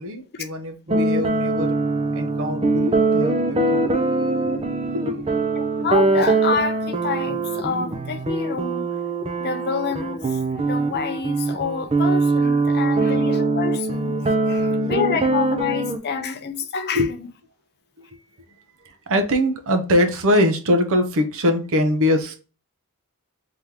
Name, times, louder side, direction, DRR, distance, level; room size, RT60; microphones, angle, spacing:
voice 1, 0.0-1.8 2.1-4.0 4.4-4.5 4.9-5.2 16.9-17.1 18.8-22.4, left 1 dB, 65° right, 0.8 m, -22 dB
sound 1, 0.9-16.0, right 3 dB, 25° right, 0.5 m, -22 dB
voice 2, 5.6-8.9 9.4-17.2, left 6 dB, 45° left, 0.5 m, -28 dB
3.5 x 2.9 x 3.5 m
head